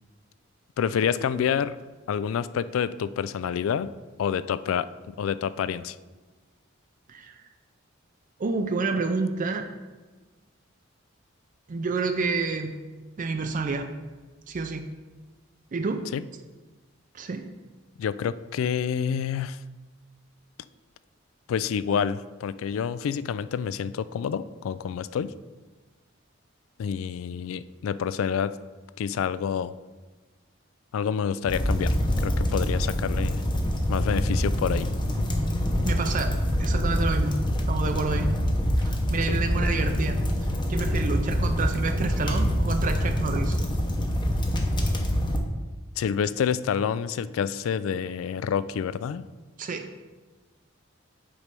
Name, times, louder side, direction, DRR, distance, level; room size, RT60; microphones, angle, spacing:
voice 1, 0.8-1.8 2.1-3.9 4.2-6.0 16.1-16.2 18.0-19.6 21.5-25.3 26.8-28.6 29.0-29.7 30.9-33.4 33.9-34.9 39.3-39.4 46.0-49.2, left 7 dB, 75° left, 15 dB, 0.3 m, -28 dB
voice 2, 7.1-7.4 8.4-9.7 11.7-12.8 13.2-13.9 14.5-14.9 15.7-16.1 17.1-17.5 35.8-36.3 36.6-37.4 37.7-38.3 38.8-43.6 49.6-49.9, right 4 dB, 40° right, 6 dB, 0.4 m, -29 dB
sound 1, 31.5-45.4, equal, 25° left, 0.8 m, -25 dB
8.2 x 3.2 x 5.2 m, 1.3 s
head